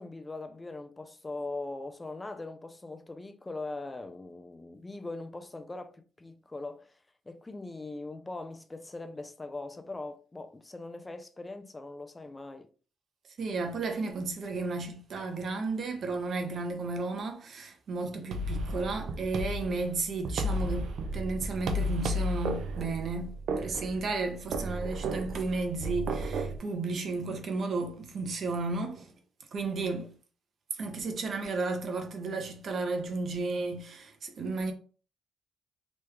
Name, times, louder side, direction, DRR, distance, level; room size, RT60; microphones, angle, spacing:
voice 1, 0.0-7.0 7.3-12.7, left 2 dB, 20° left, 0.3 m, -41 dB
voice 2, 13.4-29.1 29.5-30.1 30.7-34.7, right 3 dB, 55° right, 0.8 m, -33 dB
sound 1, 18.3-26.6, right 1 dB, 70° right, 0.5 m, -33 dB
3.1 x 2.3 x 3.3 m
cardioid pair, 90°, 0 cm